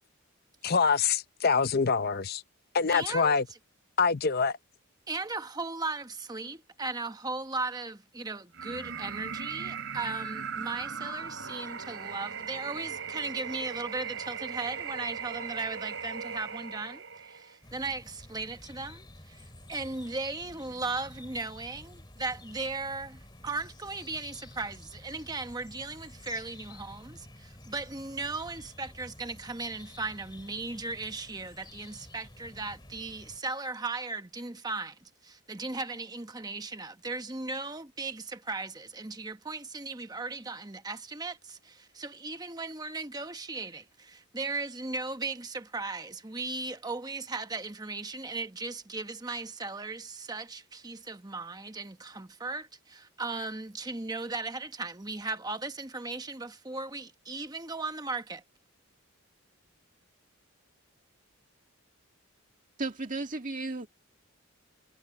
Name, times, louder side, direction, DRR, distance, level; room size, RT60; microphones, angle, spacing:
voice 1, 0.6-2.4 2.7-3.5 4.0-4.6, left 5 dB, 45° left, 0.6 m, -25 dB
voice 2, 2.9-3.4 5.1-58.4, right 3 dB, 15° right, 1.0 m, -37 dB
sound 1, 8.5-17.6, right 6 dB, 60° right, 4.5 m, -38 dB
sound 2, 17.6-33.4, left 1 dB, 20° left, 2.5 m, -50 dB
voice 3, 62.8-63.9, right 3 dB, 35° right, 2.0 m, -34 dB
head